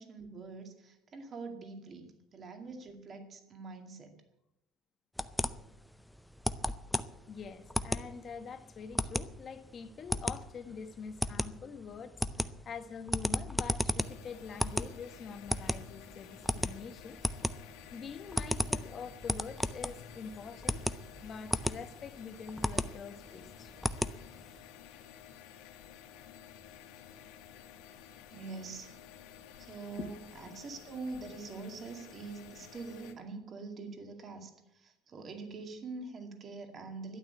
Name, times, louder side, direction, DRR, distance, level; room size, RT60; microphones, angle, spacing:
voice 1, 0.0-4.1 28.3-28.9 29.6-37.2, right 4 dB, 30° right, 2.2 m, -44 dB
sound 1, 5.2-24.6, left 1 dB, ahead, 0.5 m, -35 dB
voice 2, 7.3-17.2 17.9-23.7 30.0-30.1, left 6 dB, 30° left, 1.3 m, -45 dB
sound 2, 14.0-33.1, left 9 dB, 75° left, 2.0 m, -53 dB
12.5 x 9.0 x 9.4 m
cardioid pair, 135°, 0 cm